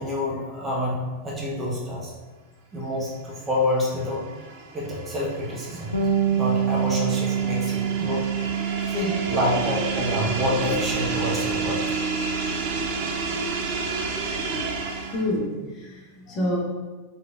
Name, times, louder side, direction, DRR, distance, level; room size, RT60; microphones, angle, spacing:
voice 1, 0.0-2.1 2.7-4.2 4.7-6.1 6.4-12.0, left 1 dB, 15° right, -5 dB, 0.7 m, -28 dB
sound 1, 3.5-15.4, right 4 dB, 50° right, 0.5 m, -31 dB
Bass guitar, 5.9-15.5, right 8 dB, 85° left, 0.5 m, -29 dB
voice 2, 15.1-16.6, left 1 dB, 35° left, -4 dB, 1.0 m, -29 dB
3.9 x 3.2 x 2.4 m, 1.3 s
figure-of-eight pair, 90°, 0 cm